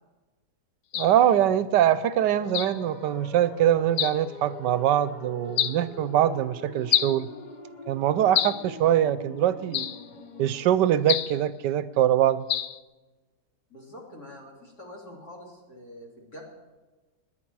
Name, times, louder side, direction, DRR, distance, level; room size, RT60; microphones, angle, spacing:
sound 1, 0.9-1.2 2.5-2.8 4.0-4.2 5.6-5.8 6.9-7.2 8.3-8.7 9.7-10.1 11.1-11.4 12.5-12.8, left 10 dB, 85° left, 0.6 m, -27 dB
voice 1, 0.9-7.3 7.9-9.9 10.4-12.4, right 11 dB, 80° right, 15 dB, 1.2 m, -23 dB
sound 2, 2.2-11.1, left 3 dB, 30° left, 0.9 m, -44 dB
voice 2, 13.7-16.4, left 1 dB, 55° left, -2 dB, 3.8 m, -45 dB
20.5 x 10.0 x 4.7 m, 1.2 s
omnidirectional pair, 1.9 m